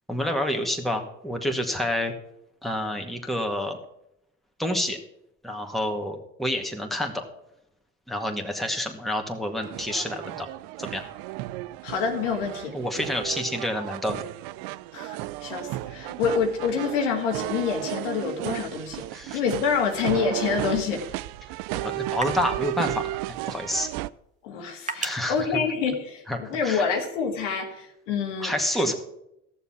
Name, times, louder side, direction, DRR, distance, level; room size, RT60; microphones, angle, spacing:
voice 1, 0.1-2.1 2.6-3.8 4.6-5.0 5.4-7.2 8.1-10.5 10.8-11.0 12.7-14.2 19.1-19.4 21.7-23.0 23.5-23.9 25.0-25.6 26.3-26.9 28.4-28.9, left 1 dB, ahead, 2 dB, 2.0 m, -28 dB
sound 1, 9.6-24.1, right 17 dB, 70° right, 0.5 m, -34 dB
voice 2, 11.8-12.7 14.9-15.2 15.4-19.1 19.3-21.1 24.4-28.5 28.9-29.0, left 6 dB, 80° left, 3 dB, 2.0 m, -27 dB
sound 2, 19.9-26.6, right 3 dB, 20° right, 1.4 m, -42 dB
14.5 x 7.0 x 6.0 m, 0.80 s
hypercardioid pair, 70°, 36 cm